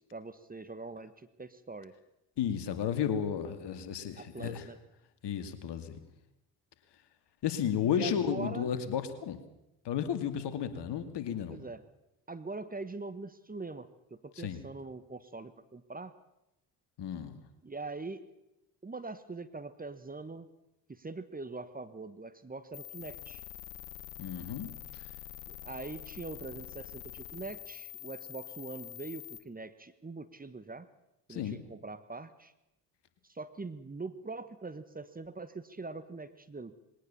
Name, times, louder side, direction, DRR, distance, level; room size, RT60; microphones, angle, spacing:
voice 1, 0.1-1.1 1.4-1.9 4.2-4.8 7.8-8.7 11.5-11.8 12.3-16.1 17.6-18.2 18.8-20.5 20.9-23.4 25.5-30.9 31.3-32.5 33.3-36.7, right 3 dB, 15° right, 12 dB, 1.4 m, -42 dB
voice 2, 2.4-4.7 5.2-6.0 7.4-9.4 9.8-11.6 14.4-14.6 17.0-17.4 24.2-25.0 31.3-31.6, left 8 dB, 55° left, 10 dB, 2.5 m, -33 dB
sound 1, 22.7-29.4, left 13 dB, 75° left, 1.5 m, -46 dB
21.0 x 18.5 x 7.1 m, 0.89 s
hypercardioid pair, 55°, 48 cm